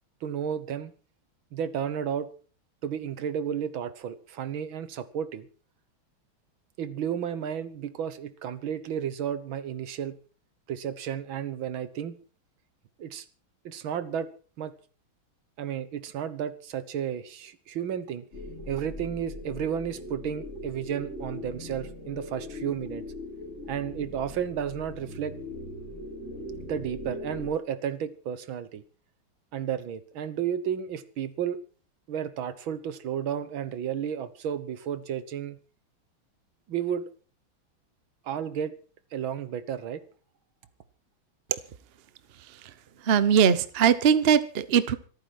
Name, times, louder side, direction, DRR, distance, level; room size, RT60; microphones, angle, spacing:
voice 1, 0.2-0.9 1.5-2.3 2.8-5.5 6.8-10.2 10.7-12.2 13.0-13.3 13.7-14.3 14.6-14.7 15.6-18.3 18.7-23.0 23.7-25.3 26.7-28.8 29.5-31.6 32.1-35.6 36.7-37.0 38.2-38.7 39.1-40.0, right 8 dB, 75° right, 14 dB, 1.9 m, -32 dB
sound 1, 18.3-27.5, left 1 dB, 30° left, 3.3 m, -40 dB
voice 2, 43.0-44.9, right 7 dB, 50° right, 14 dB, 0.7 m, -21 dB
26.0 x 9.1 x 4.7 m, 0.39 s
omnidirectional pair, 2.3 m